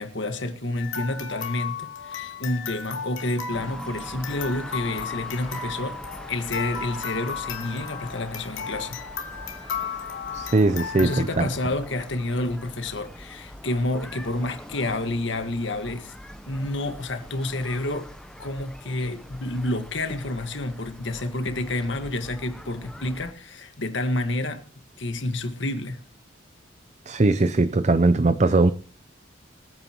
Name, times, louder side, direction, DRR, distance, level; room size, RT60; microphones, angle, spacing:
voice 1, 0.0-6.0 6.3-9.0 11.0-16.1 16.5-18.1 18.4-24.7 25.0-26.0, left 2 dB, 70° left, 1.7 m, -29 dB
sound 1, 0.7-11.2, left 6 dB, 90° left, 2.6 m, -35 dB
sound 2, 3.5-23.3, equal, 5° left, 0.8 m, -43 dB
voice 2, 10.3-11.5 27.1-28.7, right 2 dB, 35° right, 0.6 m, -20 dB
26.5 x 9.2 x 3.0 m
head